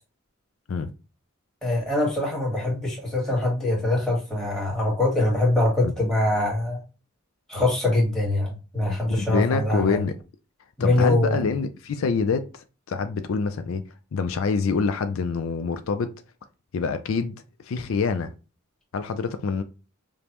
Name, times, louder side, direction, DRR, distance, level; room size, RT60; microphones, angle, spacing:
voice 1, 1.6-6.8 7.5-10.0 10.8-11.4, left 2 dB, ahead, 1.6 m, -23 dB
voice 2, 9.2-10.1 10.8-13.8 14.1-16.1 16.7-18.3 18.9-19.6, left 5 dB, 70° left, 0.4 m, -26 dB
5.1 x 2.1 x 2.9 m
head